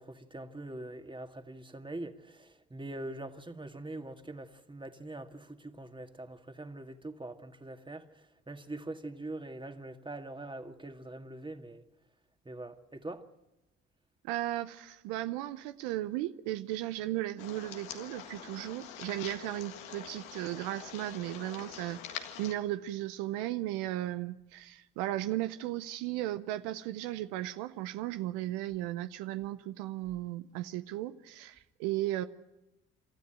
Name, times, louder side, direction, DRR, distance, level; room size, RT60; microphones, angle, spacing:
voice 1, 0.0-11.8 12.5-13.3, right 2 dB, 15° right, 2.0 m, -43 dB
voice 2, 14.2-32.3, right 15 dB, 85° right, 0.7 m, -36 dB
sound 1, 17.4-22.5, left 9 dB, 85° left, 1.8 m, -45 dB
27.5 x 13.5 x 9.0 m
hypercardioid pair, 50°, 31 cm